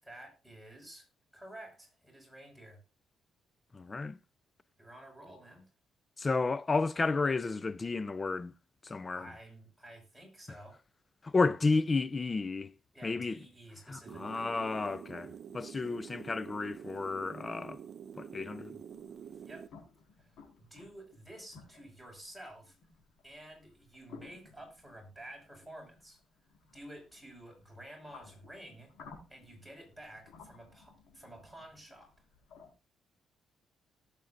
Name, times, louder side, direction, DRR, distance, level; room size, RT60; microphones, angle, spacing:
voice 1, 0.0-1.1 1.3-2.8 4.8-5.7 9.2-10.8 12.9-14.5 19.4-19.7 20.2-22.8 23.2-26.2 26.7-28.9 29.3-32.1, right 1 dB, ahead, 5.9 m, -51 dB
voice 2, 3.7-4.2 6.2-8.5 8.8-9.3 11.2-12.7 13.0-13.4 13.9-17.8 18.2-18.8, left 3 dB, 30° left, 0.5 m, -32 dB
sound 1, 14.1-19.7, right 8 dB, 60° right, 0.5 m, -47 dB
sound 2, 18.9-32.7, left 5 dB, 80° left, 4.7 m, -57 dB
18.5 x 8.1 x 2.6 m
cardioid pair, 90°, 0 cm